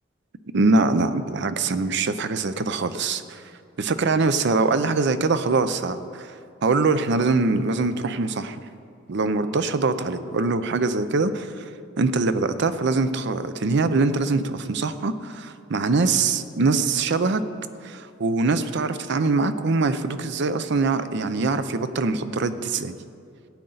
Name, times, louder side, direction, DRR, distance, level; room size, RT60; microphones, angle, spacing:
voice 1, 0.5-3.4 3.8-6.3 6.6-8.6 9.1-11.7 12.0-17.4 17.8-22.9, right 3 dB, 60° right, 11 dB, 0.6 m, -23 dB
16.0 x 8.9 x 4.0 m, 2.4 s
head